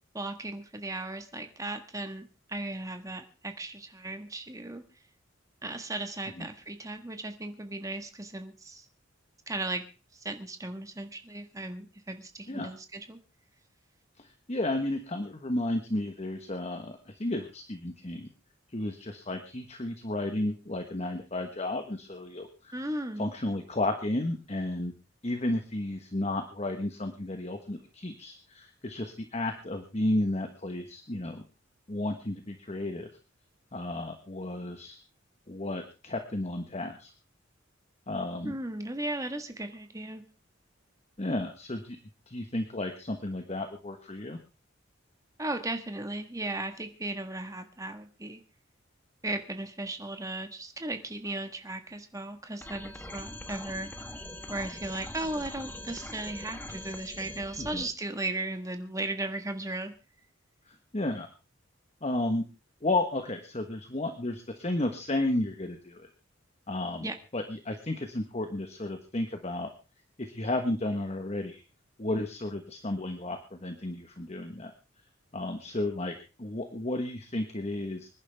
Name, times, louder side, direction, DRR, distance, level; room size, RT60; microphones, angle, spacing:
voice 1, 0.1-4.8 5.6-8.9 9.5-9.8 10.1-13.2 22.7-23.3 38.4-40.2 45.4-48.4 49.2-54.1 54.5-59.9 67.0-67.2, right 2 dB, 15° right, 7 dB, 1.6 m, -36 dB
voice 2, 14.2-18.3 18.7-22.7 23.2-24.9 25.2-31.4 31.9-33.1 33.7-35.0 35.5-37.1 38.1-38.5 41.2-42.0 42.3-44.4 57.6-57.8 60.7-61.3 62.0-62.4 62.8-66.1 66.7-69.7 70.2-71.6 72.0-74.7 75.3-78.1, left 1 dB, 35° left, 6 dB, 1.3 m, -33 dB
sound 1, 52.6-57.9, left 1 dB, 10° left, 1.3 m, -42 dB
25.5 x 11.0 x 3.5 m, 0.33 s
head